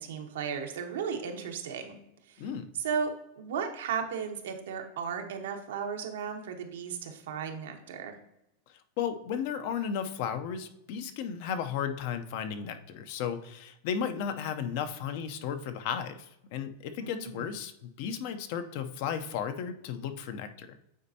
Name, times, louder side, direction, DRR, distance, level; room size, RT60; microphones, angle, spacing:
voice 1, 0.0-2.0 2.3-2.4 2.8-8.2 17.0-17.5, right 6 dB, 90° right, 4 dB, 1.0 m, -35 dB
voice 2, 9.0-20.8, left 8 dB, 55° left, 9 dB, 0.6 m, -34 dB
8.6 x 4.2 x 2.8 m, 0.81 s
supercardioid pair, 155°, 0 cm